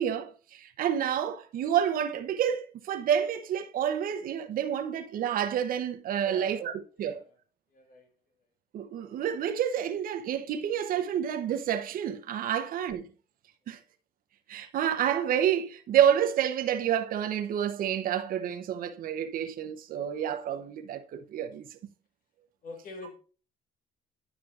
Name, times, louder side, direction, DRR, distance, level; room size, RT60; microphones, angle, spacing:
voice 1, 0.0-6.7 7.0-7.2 8.7-13.0 13.7-13.8 14.5-21.8, right 9 dB, 55° right, 0.8 m, -29 dB
voice 2, 6.2-6.7 7.0-7.4 7.7-8.1 12.5-12.7 22.6-23.2, left 2 dB, 55° left, 1.8 m, -45 dB
9.6 x 6.0 x 2.5 m
cardioid pair, 110°, 17 cm